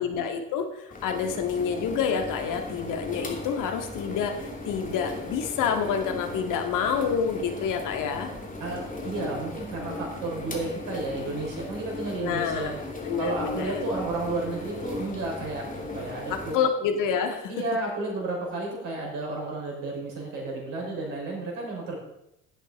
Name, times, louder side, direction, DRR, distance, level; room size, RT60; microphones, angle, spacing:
voice 1, 0.0-4.4 4.7-8.3 12.2-12.7 13.0-13.9 16.3-17.5, left 7 dB, 50° left, 5 dB, 1.8 m, -28 dB
sound 1, 0.9-16.5, left 2 dB, 20° left, 2.8 m, -37 dB
voice 2, 8.6-12.8 13.2-16.6 17.5-22.0, right 2 dB, 55° right, -1 dB, 5.5 m, -32 dB
16.5 x 8.2 x 4.2 m, 0.82 s
figure-of-eight pair, 65°, 40 cm